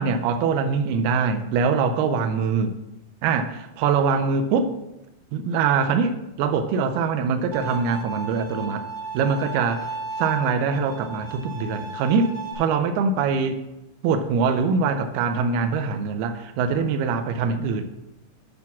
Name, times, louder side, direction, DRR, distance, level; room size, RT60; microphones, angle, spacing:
voice 1, 0.0-2.7 3.2-4.7 5.3-8.8 9.1-9.9 10.2-13.6 14.0-17.8, right 5 dB, 85° right, 7 dB, 2.6 m, -23 dB
Bowed string instrument, 7.5-12.5, right 3 dB, 45° right, 0.7 m, -35 dB
8.7 x 4.1 x 7.1 m, 0.93 s
omnidirectional pair, 4.6 m